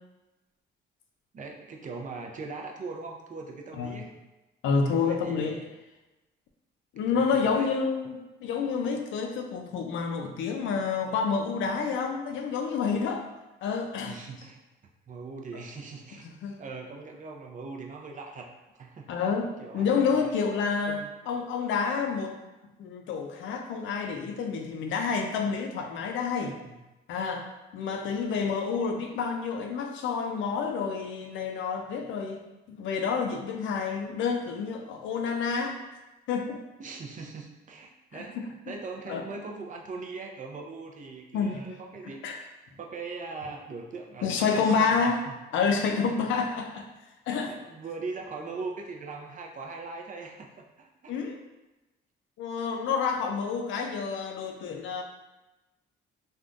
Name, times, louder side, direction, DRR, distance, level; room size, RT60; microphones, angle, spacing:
voice 1, 1.3-4.1 4.9-5.6 7.1-7.7 14.1-14.6 15.1-16.2 16.6-18.5 18.8-19.3 19.6-20.3 20.9-21.1 21.6-21.7 26.5-26.8 36.8-38.4 38.7-42.3 42.8-45.4 45.8-46.2 47.5-51.1, right 4 dB, 40° right, 1 dB, 0.5 m, -40 dB
voice 2, 4.6-5.6 6.9-13.3 13.6-14.2 16.4-16.6 19.1-22.4 22.8-26.6 27.1-27.5 27.7-32.4 32.7-35.8 36.3-36.6 38.1-38.5 39.1-39.2 41.3-41.6 42.2-42.4 44.2-45.2 45.5-46.9 47.3-47.5 51.1-51.4 52.4-55.0, left 5 dB, 75° left, 4 dB, 0.4 m, -29 dB
3.4 x 2.2 x 2.5 m, 1.1 s
cardioid pair, 90°, 20 cm